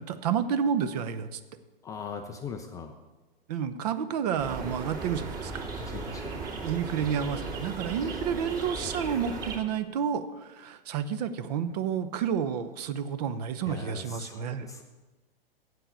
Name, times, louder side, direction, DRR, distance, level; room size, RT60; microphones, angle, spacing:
voice 1, 0.0-1.4 3.5-5.6 6.5-14.7, right 7 dB, 45° right, 12 dB, 0.8 m, -30 dB
voice 2, 1.8-2.9 5.8-6.4 13.6-14.8, left 6 dB, 10° left, 5 dB, 0.4 m, -40 dB
sound 1, 4.4-9.6, right 3 dB, 30° right, 2.3 m, -36 dB
7.8 x 7.7 x 8.4 m, 1.2 s
figure-of-eight pair, 105°, 29 cm